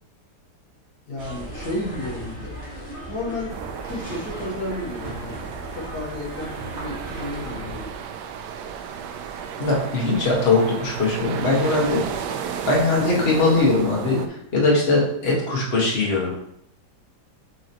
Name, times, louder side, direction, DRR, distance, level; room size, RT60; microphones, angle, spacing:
voice 1, 1.1-2.5 3.1-3.5 3.9-7.9, left 1 dB, 70° left, -4 dB, 1.9 m, -32 dB
sound 1, 1.2-7.9, right 1 dB, 40° right, 2.0 m, -37 dB
sound 2, 3.5-14.3, right 7 dB, 85° right, 1.2 m, -33 dB
voice 2, 9.6-12.0 12.7-16.3, left 3 dB, 35° left, -4 dB, 1.7 m, -21 dB
6.6 x 4.8 x 2.9 m, 0.75 s
omnidirectional pair, 1.8 m